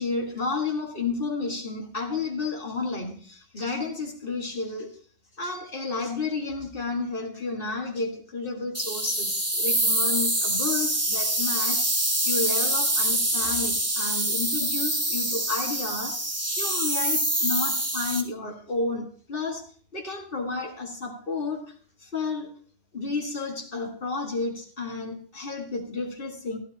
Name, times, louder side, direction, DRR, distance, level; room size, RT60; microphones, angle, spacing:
voice 1, 0.0-4.9 5.4-16.2 16.6-19.6 19.9-21.7 22.0-22.5 22.9-26.6, left 3 dB, 55° left, 1 dB, 2.1 m, -31 dB
sound 1, 8.7-18.2, right 1 dB, 15° right, 1.1 m, -25 dB
15.5 x 12.0 x 2.9 m, 0.42 s
omnidirectional pair, 1.1 m